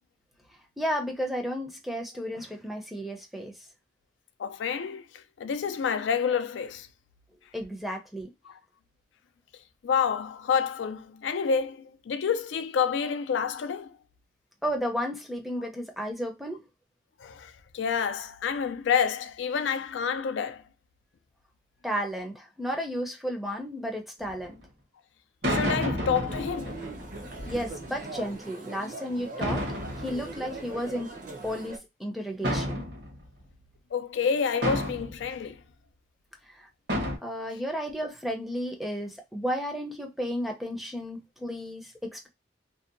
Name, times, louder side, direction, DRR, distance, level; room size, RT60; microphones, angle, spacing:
voice 1, 0.8-3.5 7.5-8.3 14.6-16.6 21.8-24.6 27.5-29.7 30.0-31.1 31.4-32.8 36.6-36.7 37.2-42.3, equal, ahead, 0.5 m, -33 dB
voice 2, 4.4-5.0 5.4-6.9 8.5-8.6 9.8-14.0 17.2-20.6 25.5-26.8 33.9-35.6, left 6 dB, 85° left, 0.4 m, -28 dB
sound 1, 24.2-24.5 25.4-28.1 29.4-31.1 32.4-33.4 34.6-35.3 36.9-37.2, equal, 60° right, 1.0 m, -31 dB
sound 2, 26.3-31.8, right 3 dB, 45° right, 0.7 m, -41 dB
2.7 x 2.2 x 2.4 m
head